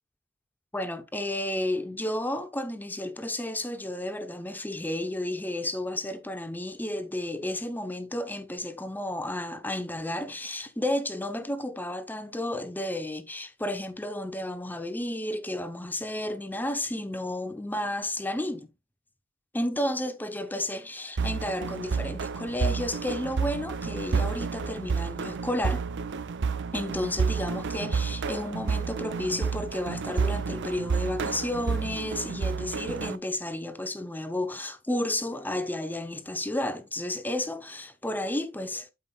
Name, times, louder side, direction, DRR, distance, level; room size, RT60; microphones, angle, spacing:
voice 1, 0.7-18.7 19.5-25.9 26.7-38.9, left 1 dB, 10° left, 0.8 m, -32 dB
sound 1, 21.2-33.2, right 5 dB, 55° right, 0.5 m, -30 dB
12.0 x 5.3 x 2.3 m
head